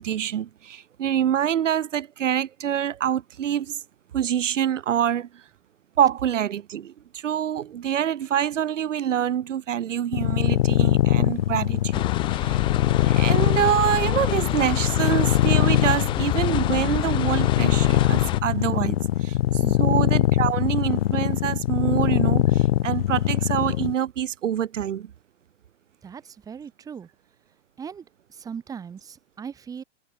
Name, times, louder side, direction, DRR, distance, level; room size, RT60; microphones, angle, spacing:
voice 1, 0.0-3.8 4.1-5.4 6.0-12.1 12.3-12.6 13.0-19.4 19.8-25.1, right 10 dB, 80° right, 4.0 m, -26 dB
sound 1, 10.1-23.9, left 13 dB, 55° left, 0.8 m, -22 dB
sound 2, 11.9-18.4, left 14 dB, 15° left, 1.1 m, -28 dB
voice 2, 19.6-19.9 26.0-27.1 27.8-29.8, right 7 dB, 10° right, 4.8 m, -39 dB
supercardioid pair, 175°, 37 cm